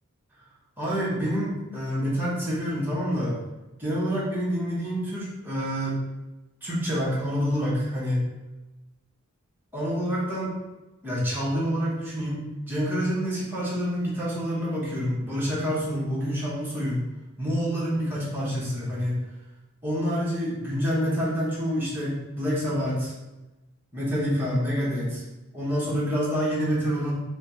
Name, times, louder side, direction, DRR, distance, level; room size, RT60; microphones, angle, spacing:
voice 1, 0.8-3.4 3.8-6.0 6.6-8.2 9.7-10.5 11.0-17.0 17.4-19.2 19.8-23.1 23.9-25.2 25.5-27.2, equal, 10° right, -8 dB, 0.8 m, -27 dB
4.0 x 2.0 x 2.9 m, 1.1 s
head